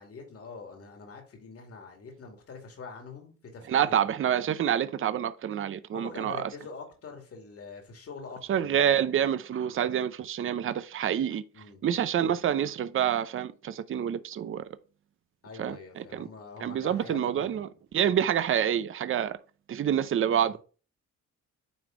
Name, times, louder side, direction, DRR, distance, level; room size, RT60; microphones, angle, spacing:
voice 1, 0.0-4.0 5.9-9.2 11.5-11.8 15.4-17.8 18.1-18.2 20.5-20.6, left 4 dB, 50° left, 2.4 m, -45 dB
voice 2, 3.7-6.4 8.5-11.4 11.8-14.6 15.6-16.3 16.6-19.4 19.7-20.6, right 9 dB, 45° right, 0.6 m, -27 dB
9.5 x 3.3 x 3.9 m
cardioid pair, 90°, 30 cm